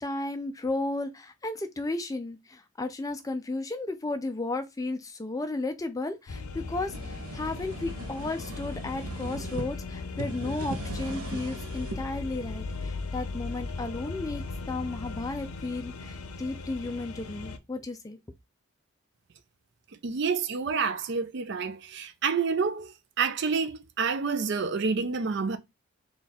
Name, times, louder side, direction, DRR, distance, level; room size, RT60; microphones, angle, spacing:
voice 1, 0.0-18.2, left 2 dB, 15° left, 0.4 m, -34 dB
sound 1, 6.3-17.6, left 3 dB, 90° left, 0.6 m, -38 dB
sound 2, 6.6-9.7 10.1-12.0, right 2 dB, 90° right, 0.7 m, -39 dB
voice 2, 20.0-25.6, right 5 dB, 55° right, 0.4 m, -28 dB
3.6 x 2.4 x 4.1 m
head